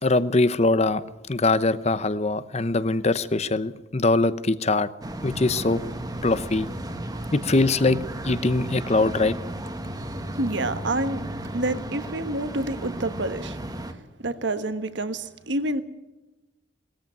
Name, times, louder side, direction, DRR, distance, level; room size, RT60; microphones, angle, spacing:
voice 1, 0.0-4.9 5.2-5.8 6.2-6.7 7.3-8.0 8.2-9.4, left 2 dB, 35° left, 15 dB, 0.9 m, -22 dB
sound 1, 5.0-13.9, right 1 dB, 20° right, 1.5 m, -34 dB
voice 2, 10.3-11.2 11.5-13.6 14.2-15.8, right 2 dB, 70° right, 11 dB, 1.4 m, -28 dB
20.0 x 14.5 x 9.3 m, 1.1 s
head